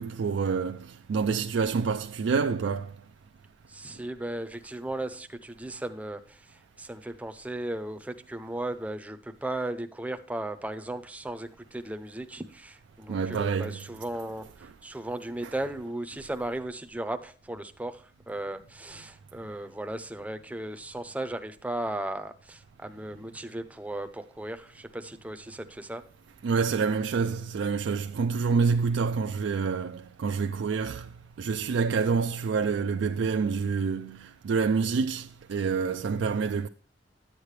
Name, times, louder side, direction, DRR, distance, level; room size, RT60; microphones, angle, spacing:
voice 1, 0.0-2.9 13.1-13.9 15.4-15.5 26.4-31.1 31.4-36.7, right 5 dB, 90° right, 0.4 m, -27 dB
voice 2, 3.7-26.0, right 1 dB, 10° right, 0.5 m, -36 dB
10.5 x 8.2 x 3.2 m
head